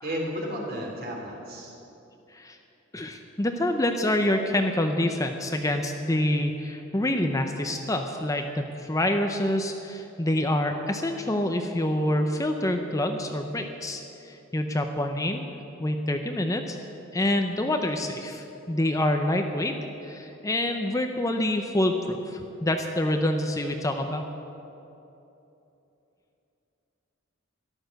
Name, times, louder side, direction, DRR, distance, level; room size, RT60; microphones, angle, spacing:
voice 1, 0.0-1.8, equal, 50° right, -1 dB, 3.0 m, -33 dB
voice 2, 2.9-15.4 15.8-16.8 17.1-19.7 20.0-24.2, left 1 dB, 15° left, 5 dB, 0.6 m, -26 dB
13.5 x 11.5 x 6.5 m, 2.9 s
head